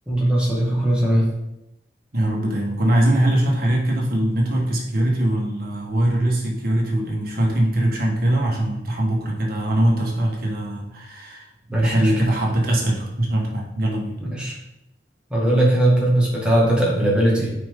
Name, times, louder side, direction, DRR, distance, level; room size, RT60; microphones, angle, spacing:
voice 1, 0.1-1.3 11.7-12.1 14.2-14.6 15.3-17.5, right 1 dB, 5° right, -5 dB, 1.9 m, -19 dB
voice 2, 2.1-14.2, right 1 dB, 55° right, -1 dB, 1.6 m, -22 dB
6.9 x 5.2 x 3.8 m, 0.87 s
head